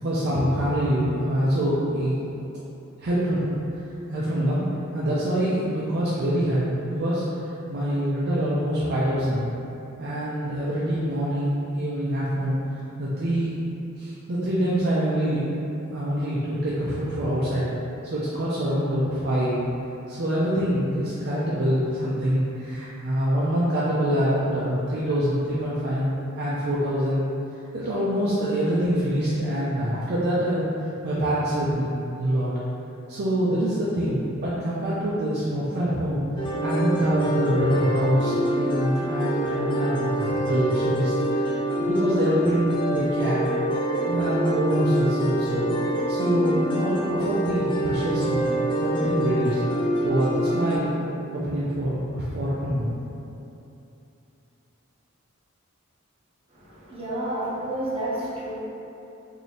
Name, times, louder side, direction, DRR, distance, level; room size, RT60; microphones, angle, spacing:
voice 1, 0.0-2.2 3.0-3.6 4.1-4.6 4.9-9.5 10.0-12.6 13.0-13.6 14.0-15.5 15.9-17.7 18.0-19.6 20.1-26.1 26.4-27.2 27.7-30.6 31.0-32.5 33.1-43.4 44.1-45.7 46.1-48.5 48.8-49.6 50.0-51.0 51.3-52.9, equal, 50° right, -8 dB, 0.5 m, -25 dB
sound 1, 36.4-50.8, right 1 dB, 25° left, 0.5 m, -26 dB
voice 2, 56.5-58.5, right 1 dB, 30° right, -9 dB, 1.0 m, -30 dB
3.1 x 2.7 x 4.1 m, 2.8 s
head